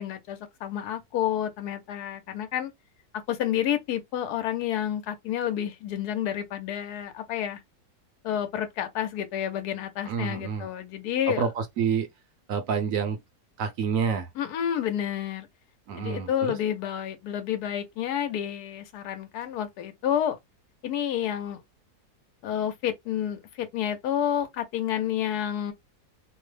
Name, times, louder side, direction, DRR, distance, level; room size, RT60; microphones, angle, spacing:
voice 1, 0.0-2.7 3.3-7.6 8.2-11.4 14.4-15.5 16.0-20.4 20.8-21.6 22.4-25.7, left 10 dB, 75° left, 1.2 m, -29 dB
voice 2, 10.0-10.7 11.4-12.1 12.5-13.2 13.6-14.3 15.9-16.6, right 6 dB, 65° right, 0.9 m, -28 dB
2.9 x 2.1 x 3.1 m
omnidirectional pair, 1.7 m